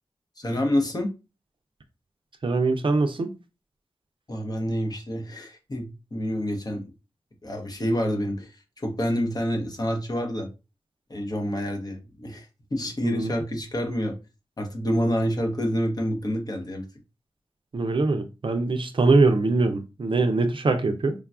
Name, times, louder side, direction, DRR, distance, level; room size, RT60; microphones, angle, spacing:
voice 1, 0.4-1.1 4.3-6.9 7.4-8.5 8.8-10.5 11.1-14.2 14.6-16.9, equal, 40° left, 0.7 m, -28 dB
voice 2, 2.4-3.3 13.0-13.3 17.7-21.1, right 3 dB, 55° right, 0.4 m, -22 dB
3.3 x 2.2 x 2.4 m
wide cardioid pair, 70°, 10 cm